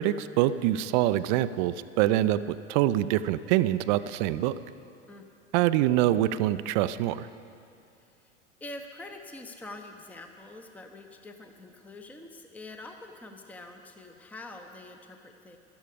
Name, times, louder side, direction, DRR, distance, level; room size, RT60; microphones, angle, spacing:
voice 1, 0.0-2.4 2.7-4.5 5.5-7.3, right 14 dB, 40° right, 15 dB, 0.5 m, -25 dB
voice 2, 8.0-8.3 8.6-15.6, left 2 dB, 5° left, 5 dB, 0.8 m, -45 dB
16.5 x 12.5 x 5.1 m, 2.5 s
figure-of-eight pair, 85°, 39 cm